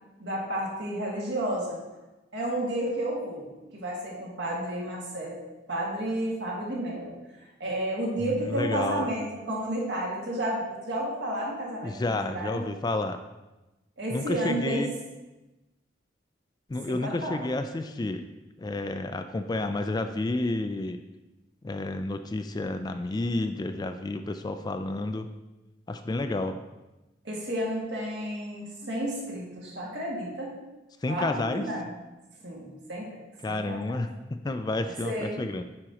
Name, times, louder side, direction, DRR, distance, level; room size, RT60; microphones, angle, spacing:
voice 1, 0.2-1.8 2.3-5.4 5.7-7.1 7.6-12.6 14.0-14.8 16.8-17.4 27.2-30.6 31.1-31.9 32.4-33.1 33.5-34.0 35.0-35.4, right 1 dB, 70° right, -4 dB, 2.0 m, -31 dB
voice 2, 8.2-9.1 11.8-13.2 14.1-14.9 16.7-18.2 18.6-21.0 21.6-25.3 25.9-26.6 31.0-31.7 33.4-35.6, left 2 dB, 20° left, 8 dB, 0.3 m, -30 dB
9.5 x 5.2 x 2.9 m, 1.0 s
head